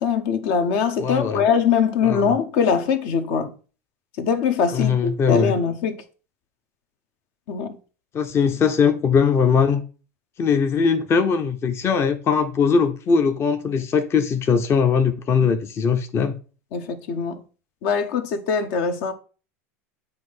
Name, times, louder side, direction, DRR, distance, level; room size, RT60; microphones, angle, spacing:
voice 1, 0.0-3.5 4.2-6.0 7.5-7.7 15.4-15.5 16.7-17.4 17.8-19.1, left 6 dB, 60° left, 0.9 m, -22 dB
voice 2, 1.0-1.5 2.0-2.3 4.7-5.5 8.1-9.8 10.4-16.4, left 6 dB, 35° left, 0.7 m, -20 dB
7.6 x 2.6 x 5.4 m
hypercardioid pair, 90°, 8 cm